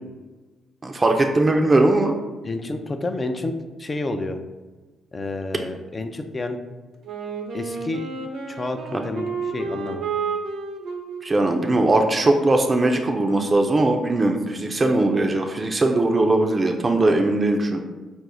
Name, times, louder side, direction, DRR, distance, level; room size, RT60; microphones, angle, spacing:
voice 1, 0.8-2.1 11.2-17.8, right 2 dB, 30° right, 3 dB, 0.5 m, -20 dB
voice 2, 2.4-3.5 3.8-4.4 5.1-6.6 7.5-8.1 8.5-10.0, left 2 dB, 30° left, 7 dB, 0.5 m, -29 dB
Wind instrument woodwind instrument, 7.0-13.6, right 5 dB, 70° right, 0.7 m, -32 dB
5.2 x 2.0 x 4.7 m, 1.2 s
supercardioid pair, 65°, 0 cm